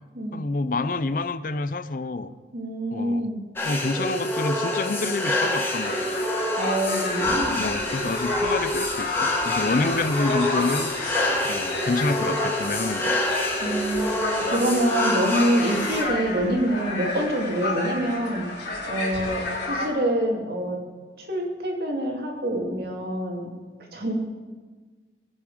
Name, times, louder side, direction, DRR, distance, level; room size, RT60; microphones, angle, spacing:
voice 1, 0.3-2.3 2.9-3.3 3.6-6.2 7.6-13.2 19.2-19.3, left 3 dB, 50° left, 13 dB, 0.5 m, -28 dB
voice 2, 2.5-3.4 6.6-7.6 13.6-18.5 18.9-20.8 21.2-23.5 23.8-24.1, right 1 dB, 60° right, 0 dB, 2.6 m, -26 dB
sound 1, 3.6-16.0, left 1 dB, 15° left, 1.8 m, -27 dB
sound 2, 5.5-19.9, left 2 dB, 90° left, 3.6 m, -32 dB
21.0 x 7.2 x 5.0 m, 1.4 s
head